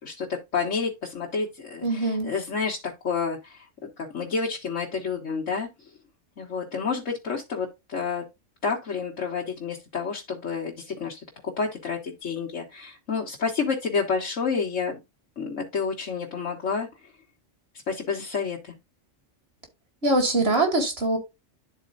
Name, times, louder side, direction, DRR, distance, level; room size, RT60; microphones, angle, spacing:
voice 1, 0.0-3.7 4.0-5.7 6.4-8.2 8.6-15.0 15.4-16.9 17.9-18.7, left 5 dB, 90° left, 1.8 m, -29 dB
voice 2, 1.8-2.3 20.0-21.2, right 2 dB, 55° right, 2.3 m, -23 dB
12.0 x 4.3 x 2.5 m
omnidirectional pair, 1.2 m